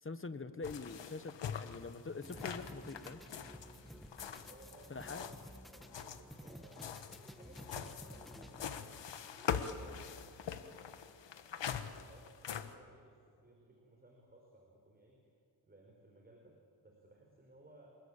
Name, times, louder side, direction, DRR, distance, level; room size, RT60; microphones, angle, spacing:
voice 1, 0.0-3.2 4.9-5.3, left 3 dB, 30° left, 11 dB, 1.3 m, -44 dB
sound 1, 0.6-5.5 5.8-12.7, left 8 dB, 90° left, 1.5 m, -43 dB
sound 2, 2.2-8.8, equal, ahead, 1.4 m, -53 dB
voice 2, 3.7-4.1 4.5-5.3 5.7-11.0 11.8-15.3 15.6-17.9, right 2 dB, 20° right, 0 dB, 4.9 m, -62 dB
28.5 x 20.5 x 8.9 m, 2.4 s
wide cardioid pair, 105°, 42 cm